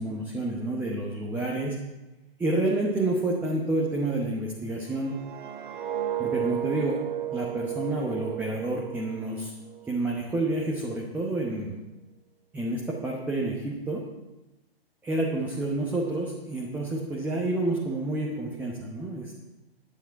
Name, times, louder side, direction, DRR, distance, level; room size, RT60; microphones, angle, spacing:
voice 1, 0.0-1.8 2.4-5.2 6.2-7.0 7.3-9.5 9.9-11.8 12.5-14.0 15.0-19.3, right 2 dB, 5° right, -2 dB, 1.0 m, -29 dB
sound 1, 4.9-9.9 10.3-10.6, right 11 dB, 50° right, 0.8 m, -33 dB
9.9 x 9.0 x 5.9 m, 1.0 s
figure-of-eight pair, 125°, 31 cm